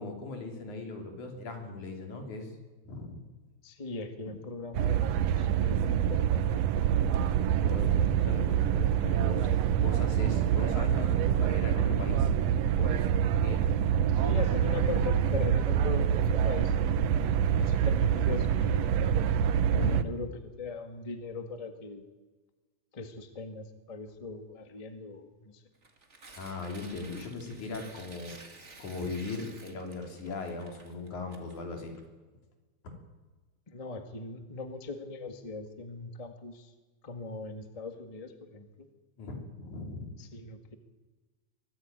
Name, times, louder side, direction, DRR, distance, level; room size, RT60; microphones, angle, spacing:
voice 1, 0.0-2.5 2.8-3.2 4.3-4.4 7.6-9.5 9.7-12.3 12.7-13.1 13.4-13.7 17.2-17.6 19.7-20.1 26.3-28.3 28.8-31.9 39.2-40.1, left 3 dB, 85° left, 3 dB, 4.6 m, -39 dB
voice 2, 3.6-6.6 8.6-9.5 14.1-16.7 17.5-18.9 19.7-20.3 20.6-22.0 22.9-25.6 33.7-36.7 37.0-38.9 40.2-40.7, left 3 dB, 15° left, 7 dB, 1.3 m, -40 dB
sound 1, 4.7-20.0, right 9 dB, 70° right, 1.8 m, -26 dB
Tearing, 25.7-32.0, right 3 dB, 25° right, 2.3 m, -52 dB
23.0 x 15.0 x 9.0 m, 1.3 s
omnidirectional pair, 3.3 m